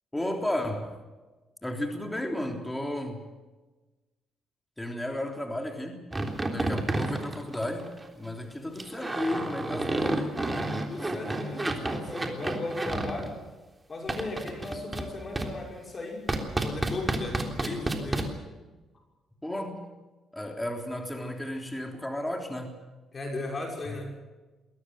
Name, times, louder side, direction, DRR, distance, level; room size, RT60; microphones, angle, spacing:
voice 1, 0.1-0.9 1.6-3.2 4.8-6.0 6.4-10.4 19.4-19.8 20.3-22.7 23.9-24.0, left 1 dB, 10° left, 3 dB, 3.4 m, -33 dB
sound 1, 6.1-8.1 8.7-13.3 14.1-15.1 15.3-15.5 16.3-18.2, right 2 dB, 20° right, 3.4 m, -30 dB
voice 2, 10.9-13.3 13.9-16.2 16.5-18.4 23.1-24.1, left 2 dB, 35° left, 1 dB, 5.9 m, -36 dB
22.5 x 17.5 x 8.0 m, 1.2 s
cardioid pair, 90°, 0 cm